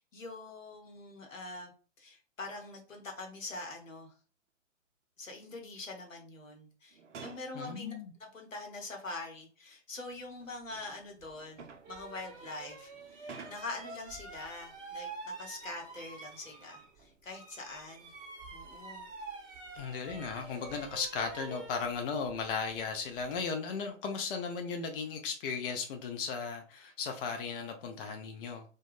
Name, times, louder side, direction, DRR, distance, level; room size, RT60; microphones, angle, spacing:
voice 1, 0.0-1.7 2.0-4.1 5.2-18.1 18.5-19.1, left 2 dB, 85° left, 0.9 m, -44 dB
sound 1, 6.9-7.6 8.8-8.9 10.1-13.9 15.7-16.2 16.6-17.3 17.9-18.0, right 5 dB, 70° right, 0.6 m, -52 dB
voice 2, 7.5-8.1 19.8-28.6, left 5 dB, 45° left, 0.5 m, -36 dB
sound 2, 11.2-11.3 11.8-17.0 17.3-23.4, right 3 dB, 20° right, 0.8 m, -47 dB
2.2 x 2.2 x 3.2 m
figure-of-eight pair, 105°, 38 cm